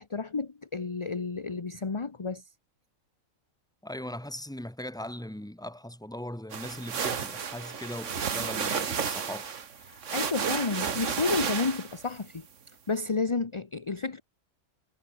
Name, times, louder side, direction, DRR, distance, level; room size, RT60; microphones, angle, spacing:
voice 1, 0.0-2.4 9.9-12.5 12.9-14.2, left 4 dB, 25° left, 0.9 m, -31 dB
voice 2, 3.8-9.5, left 1 dB, 5° left, 1.8 m, -39 dB
sound 1, 6.5-12.1, right 6 dB, 65° right, 1.7 m, -32 dB
omnidirectional pair, 1.4 m